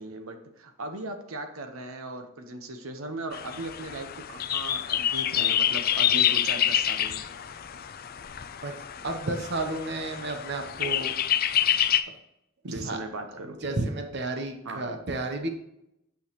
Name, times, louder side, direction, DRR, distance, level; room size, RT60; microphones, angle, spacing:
voice 1, 0.0-7.2 12.6-13.6 14.6-14.8, right 2 dB, 80° right, 6 dB, 1.1 m, -38 dB
sound 1, 3.3-12.0, left 10 dB, 45° left, 0.4 m, -27 dB
voice 2, 9.0-11.1 11.7-11.8 12.7-13.0 13.6-15.5, right 2 dB, 55° right, 5 dB, 0.9 m, -32 dB
8.6 x 6.3 x 3.0 m, 0.83 s
head